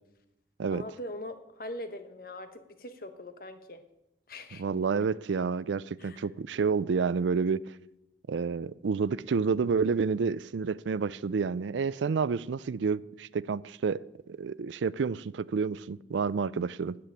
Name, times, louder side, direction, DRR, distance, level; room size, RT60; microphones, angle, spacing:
voice 1, 0.7-3.8 4.3-4.6 6.0-6.2 8.5-8.6, left 1 dB, 50° left, 1.1 m, -42 dB
voice 2, 4.6-7.7 8.3-14.0 14.3-17.0, right 5 dB, 85° right, 0.4 m, -29 dB
9.8 x 7.8 x 8.8 m
head